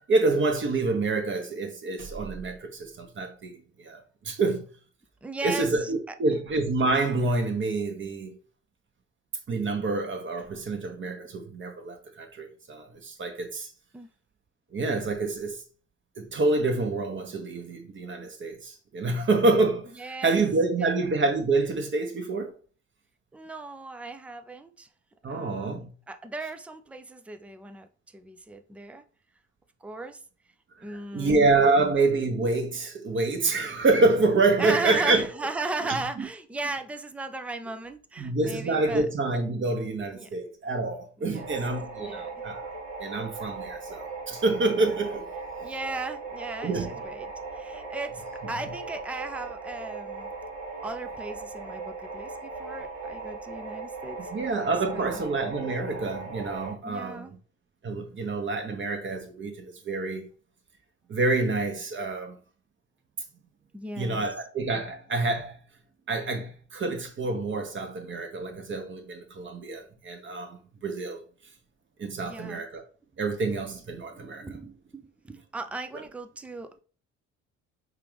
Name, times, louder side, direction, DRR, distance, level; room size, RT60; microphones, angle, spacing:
voice 1, 0.1-4.0 4.2-4.6 5.4-8.3 9.5-13.7 14.7-15.6 16.2-19.9 20.2-22.5 25.2-25.9 30.8-35.3 35.8-36.3 38.2-42.6 43.0-45.2 46.6-46.9 54.3-57.3 57.8-60.3 61.1-62.3 64.0-65.6 66.1-70.6 70.8-71.2 72.0-72.8 73.2-74.5, right 3 dB, 30° right, 1.1 m, -27 dB
voice 2, 5.2-6.1 13.9-14.1 20.0-20.4 20.8-21.0 23.3-24.9 25.3-25.8 26.1-27.9 28.1-29.0 29.8-30.2 30.8-31.4 34.6-39.1 40.1-40.3 41.2-41.5 42.0-42.4 45.6-50.3 50.8-54.2 54.9-55.2 56.8-57.3 63.7-64.2 72.2-72.6 74.1-76.8, right 2 dB, 5° right, 0.4 m, -37 dB
sound 1, 41.3-56.7, right 3 dB, 80° right, 1.1 m, -38 dB
5.6 x 2.4 x 3.4 m
figure-of-eight pair, 50°, 37 cm